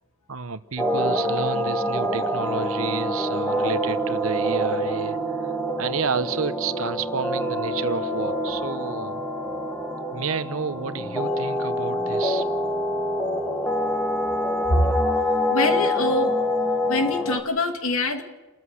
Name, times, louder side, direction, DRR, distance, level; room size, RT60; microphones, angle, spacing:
voice 1, 0.3-5.5 5.8-9.2 10.1-12.4, right 5 dB, 70° right, 12 dB, 1.0 m, -31 dB
sound 1, 0.8-17.4, equal, 5° left, 1.9 m, -26 dB
voice 2, 15.5-16.4 16.9-18.2, left 1 dB, 70° left, 5 dB, 2.5 m, -24 dB
30.0 x 14.0 x 6.5 m, 1.2 s
head